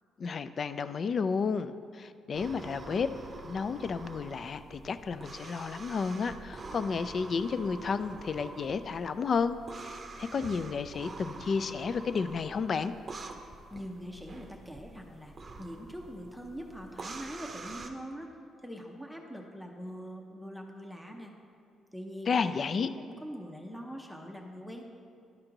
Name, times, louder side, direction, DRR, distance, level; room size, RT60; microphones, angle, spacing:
voice 1, 0.2-3.1 3.4-12.9 22.3-22.9, left 5 dB, 50° left, 12 dB, 0.3 m, -32 dB
sound 1, 2.3-17.9, right 3 dB, 35° right, 0.6 m, -46 dB
voice 2, 13.7-18.3 18.6-21.3 21.9-22.6 22.9-24.8, equal, 5° left, 1 dB, 0.7 m, -43 dB
12.0 x 4.4 x 3.8 m, 2.5 s
cardioid pair, 90°, 0 cm